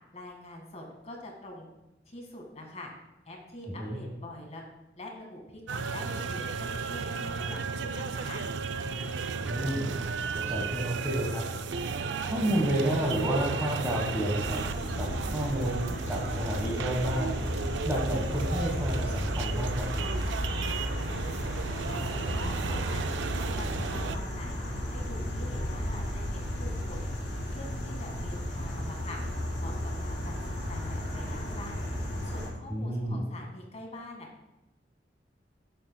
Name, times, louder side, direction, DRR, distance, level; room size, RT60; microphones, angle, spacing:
voice 1, 0.1-1.7 2.1-2.9 3.3-4.6 5.0-8.4 21.6-23.0 23.4-27.1 27.5-29.2 29.6-31.8 32.2-34.3, left 1 dB, 40° left, 1 dB, 1.8 m, -45 dB
sound 1, 5.7-24.2, right 5 dB, 85° right, 0.4 m, -34 dB
voice 2, 9.3-9.9 10.5-11.4 12.3-14.6 15.0-17.4 17.8-20.2 32.7-33.2, right 1 dB, 15° right, -5 dB, 1.3 m, -30 dB
sound 2, 14.4-32.5, left 1 dB, 90° left, 3.1 m, -34 dB
10.5 x 7.9 x 2.2 m, 0.92 s
head